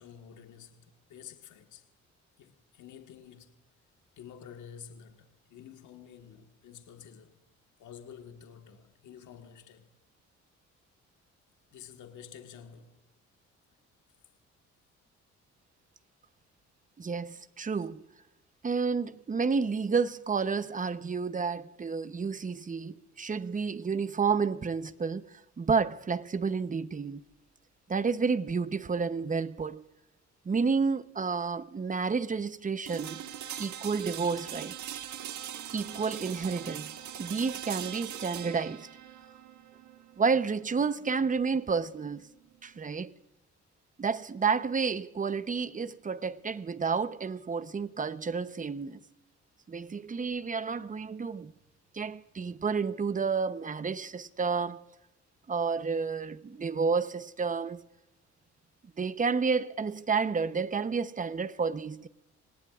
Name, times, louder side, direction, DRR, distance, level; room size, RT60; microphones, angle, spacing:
voice 1, 0.0-1.8 2.4-3.5 4.2-7.4 7.8-9.9 11.7-13.0, left 8 dB, 75° left, 1.6 m, -50 dB
voice 2, 17.0-18.1 18.6-27.3 27.9-29.9 30.4-33.2 33.6-34.8 35.7-38.9 40.2-42.3 42.6-43.2 44.0-49.0 49.7-51.5 51.9-54.8 55.5-57.8 59.0-62.1, right 5 dB, 25° right, 0.8 m, -30 dB
sound 1, 32.9-42.8, right 10 dB, 75° right, 1.3 m, -42 dB
27.0 x 18.5 x 2.4 m
cardioid pair, 90°, 30 cm